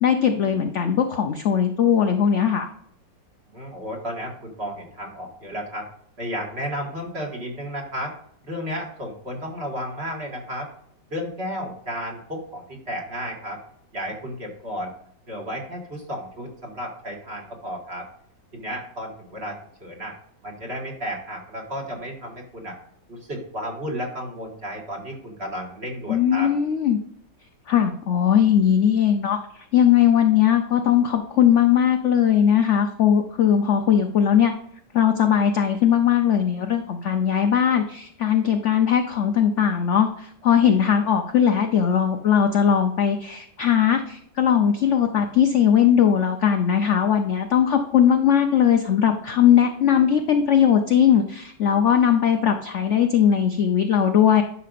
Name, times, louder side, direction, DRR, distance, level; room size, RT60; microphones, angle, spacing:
voice 1, 0.0-2.7 26.1-27.0 27.7-34.5 34.9-54.4, left 8 dB, 65° left, 6 dB, 0.7 m, -19 dB
voice 2, 3.5-5.9 6.2-8.1 8.4-10.7 11.1-13.6 13.9-14.9 15.3-18.1 18.5-20.1 20.4-22.8 23.1-26.5, equal, 35° right, 0 dB, 2.1 m, -33 dB
11.0 x 5.9 x 2.5 m, 0.69 s
omnidirectional pair, 2.0 m